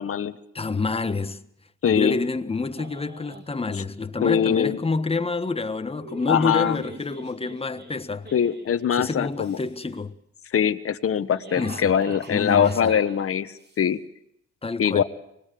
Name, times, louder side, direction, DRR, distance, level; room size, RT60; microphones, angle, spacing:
voice 1, 0.0-0.4 1.8-2.2 4.2-4.8 6.3-6.8 8.3-9.6 10.5-14.0 14.8-15.0, left 8 dB, 45° left, 1.4 m, -22 dB
voice 2, 0.5-1.4 1.8-8.3 8.9-10.2 11.5-11.9 12.3-12.9 14.6-15.0, left 3 dB, 20° left, 1.4 m, -28 dB
sound 1, 2.8-3.5 4.2-4.9 5.7-8.9 9.3-10.0 11.1-13.8, right 3 dB, 35° right, 3.7 m, -43 dB
24.5 x 20.5 x 7.7 m
cardioid pair, 90°, 30 cm